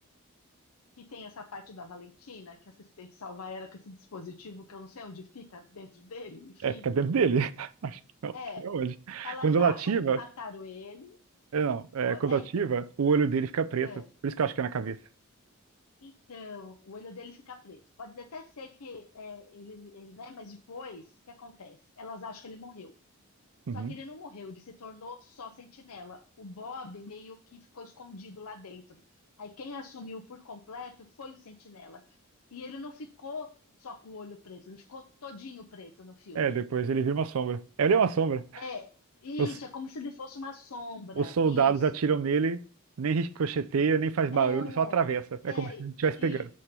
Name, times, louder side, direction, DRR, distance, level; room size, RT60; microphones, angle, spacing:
voice 1, 1.0-6.8 8.3-8.6 9.2-11.2 12.0-12.5 13.8-14.1 16.0-22.9 23.7-29.0 29.4-32.0 32.5-33.5 33.8-36.6 38.6-38.9 39.2-41.8 44.3-45.1 45.4-46.4, left 3 dB, 80° left, 0.7 m, -43 dB
voice 2, 6.6-8.3 8.6-10.2 11.5-13.9 14.2-15.0 23.7-23.9 36.4-38.4 39.4-39.5 41.2-42.6 43.0-46.5, right 5 dB, 70° right, 0.4 m, -27 dB
6.3 x 4.3 x 5.1 m
head